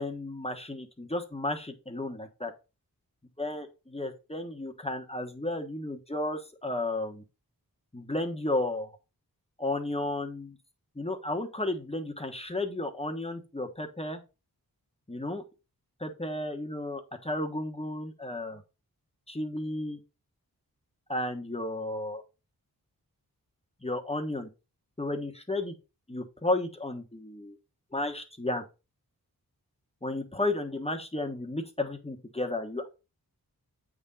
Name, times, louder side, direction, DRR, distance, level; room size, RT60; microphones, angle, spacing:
voice 1, 0.0-2.5 3.4-7.2 7.9-8.9 9.6-10.6 11.0-14.2 15.1-15.4 16.0-18.6 19.3-20.0 21.1-22.2 23.8-24.5 25.0-25.7 26.1-27.6 27.9-28.6 30.0-32.9, left 2 dB, 15° left, 4 dB, 1.2 m, -33 dB
8.0 x 3.8 x 4.1 m, 0.29 s
wide cardioid pair, 55°, 38 cm